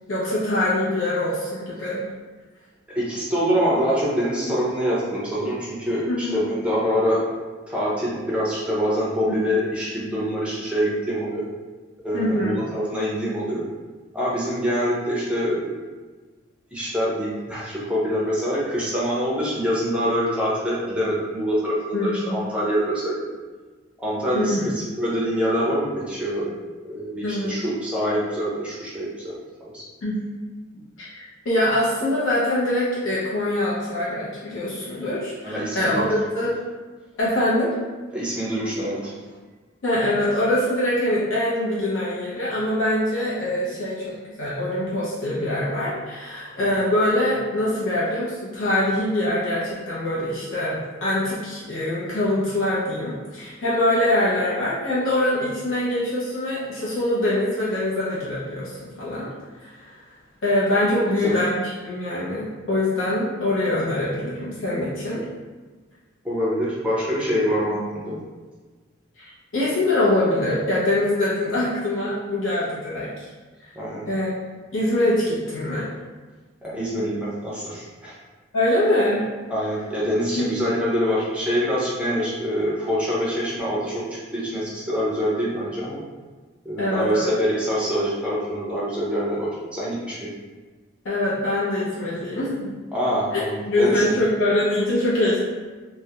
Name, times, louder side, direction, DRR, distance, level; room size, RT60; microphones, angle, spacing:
voice 1, 0.1-2.1 6.1-6.4 9.3-9.4 12.1-12.6 21.9-22.4 24.3-24.6 27.2-27.5 30.0-30.2 31.0-36.6 37.2-37.7 39.8-59.3 59.6-60.0 60.4-65.2 67.7-67.8 69.2-69.3 69.5-73.3 74.1-74.3 74.7-75.8 78.5-79.2 80.4-80.5 86.8-87.3 91.0-92.7 93.3-93.4 93.7-95.4, left 1 dB, 80° left, -8 dB, 0.5 m, -23 dB
voice 2, 2.9-7.3 7.7-11.4 12.0-13.6 14.1-15.7 16.7-23.2 24.0-26.5 26.8-29.8 35.4-36.1 38.1-39.1 61.2-61.3 66.2-68.2 73.8-74.1 76.6-78.2 79.5-84.0 84.3-86.0 86.6-90.3 92.9-94.2, equal, 5° right, -7 dB, 0.5 m, -25 dB
2.3 x 2.0 x 2.8 m, 1.3 s
head